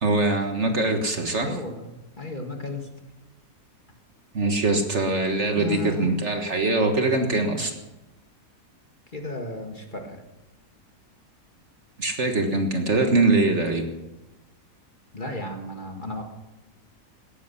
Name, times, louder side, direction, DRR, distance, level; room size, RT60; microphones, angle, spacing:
voice 1, 0.0-1.6 4.3-7.7 12.0-13.9, right 2 dB, 45° right, 5 dB, 1.7 m, -23 dB
voice 2, 1.4-2.9 5.5-6.1 9.1-10.2 15.1-16.2, left 2 dB, 30° left, 3 dB, 1.9 m, -34 dB
17.5 x 13.5 x 5.8 m, 1.0 s
omnidirectional pair, 1.7 m